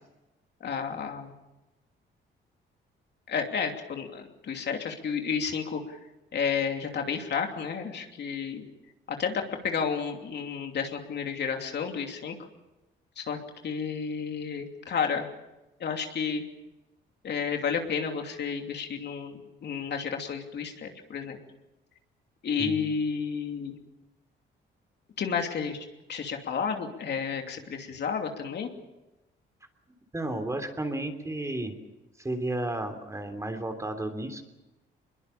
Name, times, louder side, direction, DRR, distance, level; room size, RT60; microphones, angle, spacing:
voice 1, 0.6-1.3 3.3-6.0 6.3-8.6 9.1-12.4 13.2-13.4 13.6-15.3 15.8-16.4 17.2-21.4 22.4-23.8 25.2-28.7, left 6 dB, 60° left, 4 dB, 2.9 m, -31 dB
voice 2, 30.1-31.7 32.2-34.4, right 1 dB, 15° right, 6 dB, 3.2 m, -33 dB
22.5 x 22.0 x 7.1 m, 1.0 s
cardioid pair, 90°, 20 cm